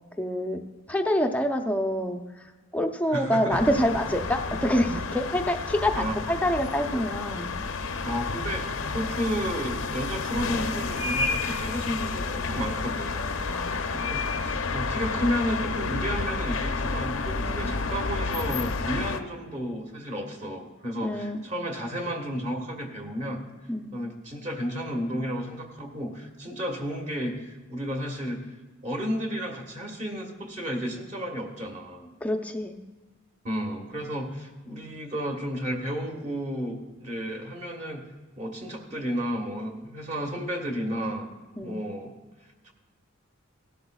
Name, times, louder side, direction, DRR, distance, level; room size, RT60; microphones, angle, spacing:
voice 1, 0.2-0.6 0.9-2.2 2.7-7.5 13.5-14.1 17.4-17.6 21.0-21.4 23.7-23.9 32.2-32.8 41.6-41.8, equal, 5° left, 4 dB, 0.6 m, -26 dB
voice 2, 3.1-3.6 5.9-6.2 8.0-13.3 13.9-23.4 23.9-28.5 28.8-32.1 33.4-38.0 38.4-41.3 41.6-42.1 42.6-42.7, equal, 35° right, 1 dB, 1.5 m, -32 dB
sound 1, 3.5-19.2, left 4 dB, 70° left, 0.7 m, -30 dB
17.0 x 12.0 x 2.3 m, 1.2 s
head